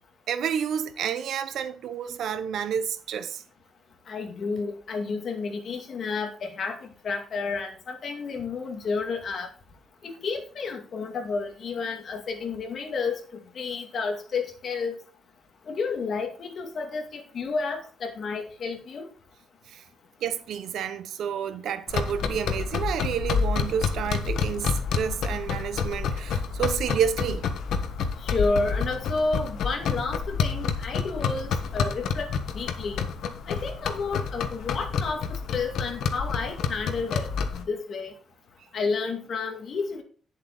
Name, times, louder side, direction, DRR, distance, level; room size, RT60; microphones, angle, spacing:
voice 1, 0.3-3.4 19.7-19.8 20.2-27.5, right 8 dB, 65° right, 1.0 m, -30 dB
voice 2, 4.1-9.5 10.0-14.9 15.7-19.1 28.2-33.0 33.5-35.2 35.5-38.1 38.7-40.0, left 4 dB, 40° left, 2.1 m, -31 dB
sound 1, 21.9-37.6, left 6 dB, 70° left, 1.3 m, -29 dB
10.5 x 7.5 x 4.0 m
cardioid pair, 170°, 0 cm